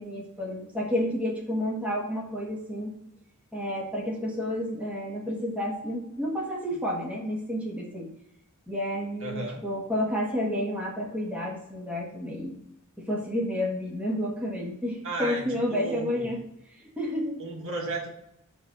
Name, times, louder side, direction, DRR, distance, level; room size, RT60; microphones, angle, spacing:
voice 1, 0.0-2.9 3.5-8.1 8.7-12.5 13.0-16.4 16.8-17.3, left 1 dB, 5° right, -3 dB, 1.5 m, -30 dB
voice 2, 9.2-9.6 15.0-16.4 17.4-18.1, right 2 dB, 65° right, -1 dB, 1.9 m, -34 dB
7.8 x 3.5 x 6.5 m, 0.80 s
head